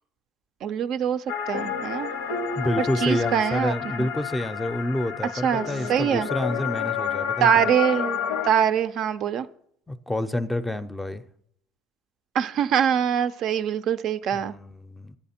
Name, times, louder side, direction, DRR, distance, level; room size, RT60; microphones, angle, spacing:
voice 1, 0.6-2.1 2.8-4.1 5.4-6.3 7.4-8.2 8.4-9.5 12.3-14.5, right 9 dB, 55° right, 0.4 m, -24 dB
sound 1, 1.3-8.5, left 7 dB, 90° left, 0.7 m, -30 dB
voice 2, 2.6-7.7 9.9-11.2 14.3-15.2, left 1 dB, 5° left, 0.5 m, -28 dB
10.5 x 8.7 x 4.3 m
supercardioid pair, 115°, 0 cm